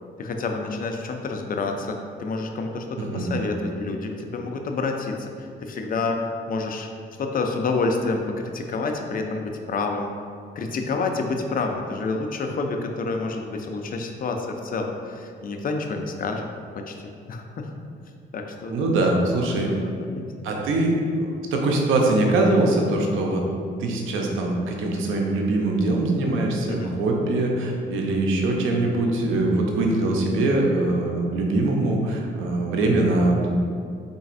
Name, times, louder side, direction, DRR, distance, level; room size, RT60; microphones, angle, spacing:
voice 1, 0.2-6.2 6.5-6.9 7.2-8.2 8.5-10.1 10.6-16.5 16.8-16.9 17.3-17.7 18.3-18.7 19.8-20.3 26.7-27.0, left 3 dB, 45° left, 3 dB, 0.5 m, -28 dB
voice 2, 3.0-3.4 18.7-19.7 20.4-23.4 23.8-33.5, right 2 dB, 85° right, 0 dB, 0.6 m, -22 dB
4.0 x 3.8 x 2.5 m, 2.3 s
cardioid pair, 90°, 20 cm